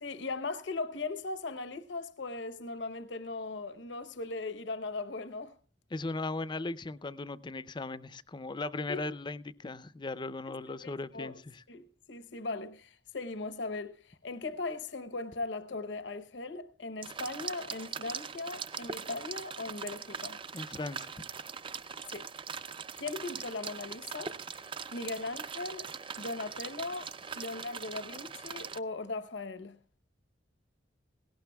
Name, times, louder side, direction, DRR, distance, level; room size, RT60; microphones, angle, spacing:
voice 1, 0.0-5.5 8.9-9.0 10.5-11.3 11.7-20.4 22.1-22.3 23.0-24.4 24.9-25.9 26.2-27.1 27.3-29.8, left 3 dB, 70° left, 0.9 m, -39 dB
voice 2, 5.9-11.6 20.5-21.1, left 3 dB, 25° left, 0.5 m, -38 dB
sound 1, 17.0-28.8, right 6 dB, 30° right, 0.5 m, -41 dB
18.0 x 17.0 x 2.3 m
head